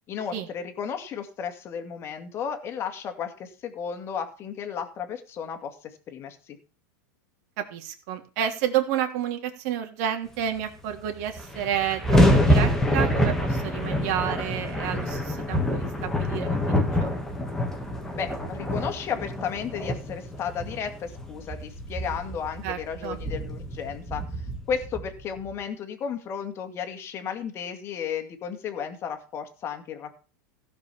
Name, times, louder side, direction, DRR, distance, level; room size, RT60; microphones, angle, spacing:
voice 1, 0.1-6.6 18.1-24.2 24.7-30.1, left 7 dB, 25° left, 6 dB, 2.2 m, -33 dB
voice 2, 7.6-17.1 22.6-23.2, right 10 dB, 50° right, 4 dB, 3.1 m, -30 dB
sound 1, 10.9-11.0 11.2-25.5, equal, 5° left, 2.0 m, -26 dB
16.0 x 5.4 x 7.1 m, 0.35 s
supercardioid pair, 155°, 10 cm